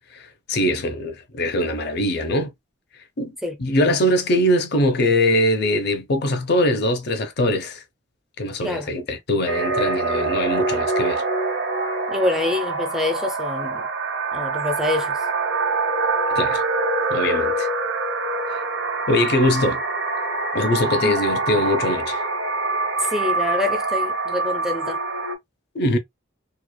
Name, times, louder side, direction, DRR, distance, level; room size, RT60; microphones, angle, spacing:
voice 1, 0.5-2.5 3.2-3.3 3.6-7.8 8.4-11.2 16.3-16.6 17.1-17.7 18.5-18.6 19.1-19.8 20.5-22.2 25.7-26.0, left 1 dB, 55° left, 0.6 m, -22 dB
sound 1, 9.5-25.4, right 3 dB, 70° right, 0.9 m, -24 dB
voice 2, 12.1-13.8 14.3-15.2 21.0-21.2 23.0-25.0, left 2 dB, ahead, 0.4 m, -26 dB
3.0 x 2.3 x 2.2 m
head